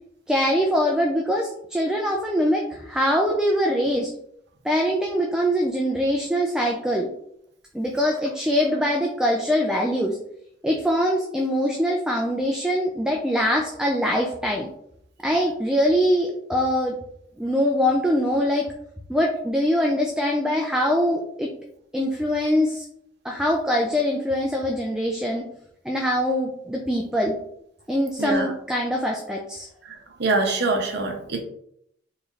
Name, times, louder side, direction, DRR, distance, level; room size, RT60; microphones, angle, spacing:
voice 1, 0.3-4.1 4.6-7.1 7.7-10.2 10.6-14.7 15.2-17.0 17.4-18.7 19.1-21.5 21.9-22.8 23.2-25.5 25.8-27.4 27.9-29.7, equal, 5° right, -1 dB, 0.4 m, -23 dB
voice 2, 30.2-31.4, right 3 dB, 60° right, 3 dB, 0.7 m, -24 dB
4.0 x 3.1 x 2.4 m, 0.71 s
head